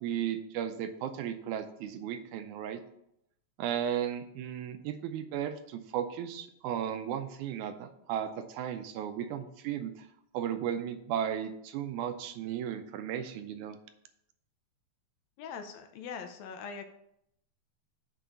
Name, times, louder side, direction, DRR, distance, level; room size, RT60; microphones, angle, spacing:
voice 1, 0.0-2.8 3.6-10.1 10.3-13.8, right 9 dB, 85° right, 9 dB, 2.1 m, -35 dB
voice 2, 15.4-16.8, left 6 dB, 75° left, 7 dB, 1.8 m, -42 dB
6.2 x 3.8 x 5.6 m, 0.75 s
omnidirectional pair, 3.4 m